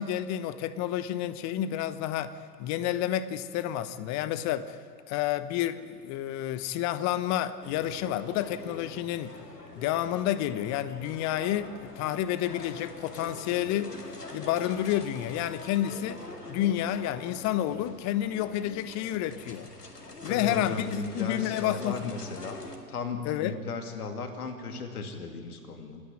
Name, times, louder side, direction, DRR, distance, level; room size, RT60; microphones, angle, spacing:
voice 1, 0.0-4.8 5.1-9.4 9.8-14.0 14.3-16.2 16.5-19.7 20.2-22.1 23.2-23.6, left 12 dB, 35° left, 14 dB, 1.1 m, -30 dB
sound 1, 7.6-22.8, left 2 dB, 90° left, 2.1 m, -44 dB
voice 2, 20.3-22.6 22.9-26.0, left 4 dB, 70° left, 5 dB, 2.6 m, -36 dB
27.0 x 10.0 x 9.8 m, 2.1 s
figure-of-eight pair, 90°, 46 cm